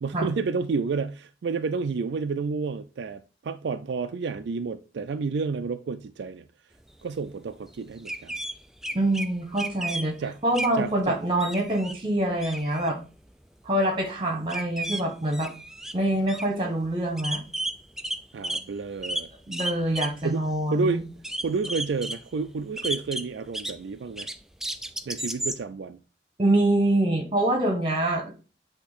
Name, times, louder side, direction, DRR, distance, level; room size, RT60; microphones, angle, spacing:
voice 1, 0.0-6.5 7.0-8.4 10.2-10.4 10.7-11.2 18.3-19.3 20.2-21.0 21.4-24.3 25.1-26.0, right 4 dB, 80° right, 0.4 m, -30 dB
sound 1, 7.8-7.9 8.0-9.3 9.6-10.1 10.5-10.7 11.1-11.9 12.2-12.9 14.5-15.0 15.3-15.9 16.3-16.5 16.9-17.0 17.2-18.7 19.0-20.2 20.5-20.6 21.2-22.2 22.8-23.8 24.2-25.6, right 1 dB, ahead, 0.3 m, -33 dB
voice 2, 8.9-10.1 10.4-13.0 13.6-15.5 15.9-17.4 19.5-21.0 26.4-28.3, right 1 dB, 30° right, 1.5 m, -25 dB
8.2 x 2.9 x 4.2 m
head